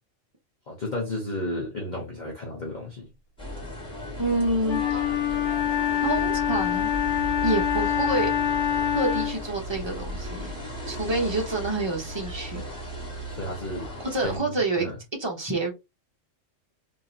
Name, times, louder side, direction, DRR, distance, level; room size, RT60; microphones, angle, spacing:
voice 1, 0.7-3.1 13.3-13.9 14.2-14.9, left 1 dB, 40° left, 1.0 m, -33 dB
sound 1, 3.4-14.4, equal, 5° left, 2.3 m, -36 dB
voice 2, 4.2-5.1 6.0-6.9 7.4-8.3 8.9-10.5 10.9-12.6 14.0-14.9 15.2-15.7, right 2 dB, 25° right, 1.0 m, -27 dB
Wind instrument woodwind instrument, 4.6-9.5, left 10 dB, 70° left, 1.6 m, -25 dB
3.6 x 3.0 x 2.8 m
omnidirectional pair, 1.3 m